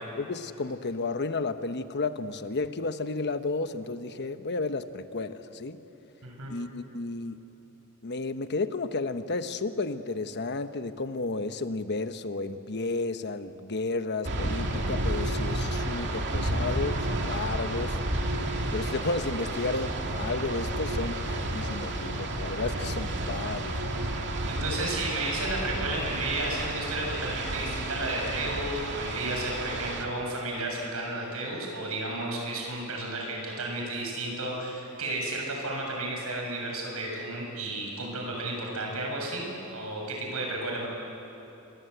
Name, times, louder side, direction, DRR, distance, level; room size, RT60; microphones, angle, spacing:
voice 1, 0.2-5.8 6.5-7.4 8.0-18.0 18.7-23.8, left 3 dB, 50° left, 9 dB, 1.1 m, -32 dB
voice 2, 6.2-6.5 24.5-40.9, right 2 dB, 75° right, 0 dB, 7.1 m, -33 dB
sound 1, 14.2-30.1, right 1 dB, 55° right, 2.4 m, -31 dB
28.0 x 24.0 x 8.1 m, 2.9 s
head